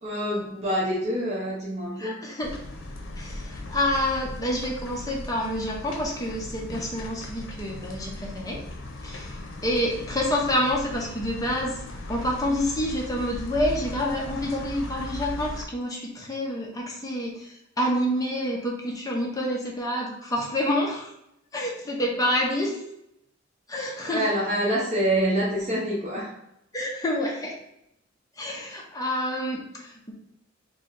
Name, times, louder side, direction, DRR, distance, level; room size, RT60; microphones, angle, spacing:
voice 1, 0.0-2.2 24.1-26.3, right 1 dB, 35° right, -6 dB, 0.7 m, -26 dB
voice 2, 2.0-2.5 3.2-8.6 9.0-11.7 12.1-21.1 21.5-22.8 23.7-24.3 26.7-27.6 28.4-30.1, equal, 20° left, -2 dB, 0.7 m, -28 dB
sound 1, 2.4-15.6, left 1 dB, 90° left, 0.6 m, -38 dB
3.1 x 2.7 x 3.9 m, 0.79 s
head